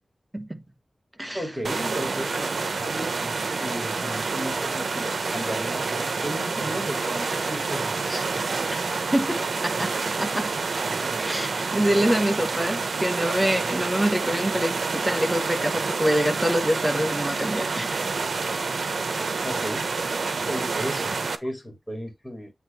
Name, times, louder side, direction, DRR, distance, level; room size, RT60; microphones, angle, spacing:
voice 1, 1.3-8.6 19.4-19.9 20.5-22.5, equal, 5° left, 2.7 m, -35 dB
sound 1, 1.6-21.4, right 4 dB, 85° right, 0.8 m, -28 dB
voice 2, 9.1-10.5 11.2-18.1, equal, 10° right, 1.3 m, -25 dB
8.1 x 3.3 x 4.5 m
wide cardioid pair, 100°, 0 cm